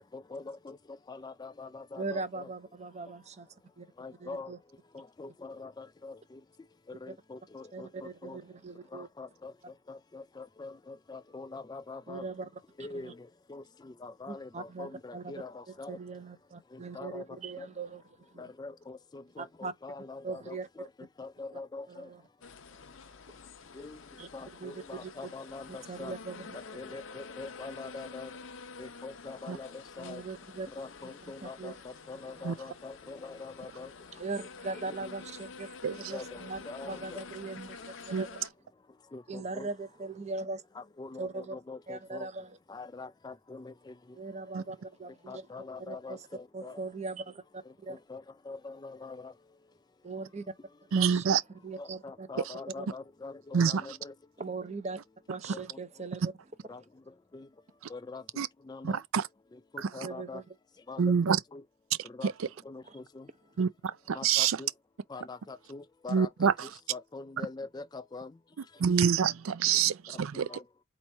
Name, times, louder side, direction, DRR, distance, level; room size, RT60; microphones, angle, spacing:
voice 1, 0.0-2.5 4.0-4.5 4.9-6.4 6.9-8.4 8.9-9.5 9.9-12.3 12.8-16.0 16.7-17.7 18.4-22.1 23.7-24.0 24.3-26.1 26.5-28.3 28.8-30.2 30.7-33.9 34.8-35.1 36.1-37.2 39.1-39.7 40.7-42.3 42.7-43.9 45.3-46.8 47.7-49.3 51.8-54.1 55.5-55.8 56.7-56.8 57.3-57.5 57.9-59.0 59.5-60.4 60.9-61.6 62.0-62.3 62.6-63.3 64.1-64.7 65.1-68.3 70.3-70.6, left 3 dB, 20° left, 0.3 m, -44 dB
voice 2, 2.0-3.5 3.8-3.9 4.2-4.6 7.7-9.1 12.1-12.5 12.9-13.1 14.3-18.4 19.4-19.7 20.2-20.7 21.9-22.2 24.2-24.3 24.6-25.3 25.7-26.6 30.0-30.7 31.0-31.7 32.4-32.5 34.2-38.5 39.3-40.6 41.2-41.6 41.9-42.6 44.1-45.5 45.8-46.2 46.5-48.0 50.0-50.5 50.9-51.4 51.6-52.3 52.7-52.9 54.4-55.0 55.3-56.3 60.0-60.4 62.9-63.0, right 3 dB, 30° right, 0.6 m, -40 dB
Bees in a bush, 22.4-38.5, left 4 dB, 70° left, 0.7 m, -48 dB
voice 3, 50.9-51.4 53.5-53.8 58.4-58.5 58.8-59.3 59.8-59.9 61.0-61.4 62.2-62.3 63.6-63.7 64.1-64.6 66.1-66.7 68.8-70.5, right 7 dB, 80° right, 0.4 m, -26 dB
4.2 x 3.0 x 3.4 m
head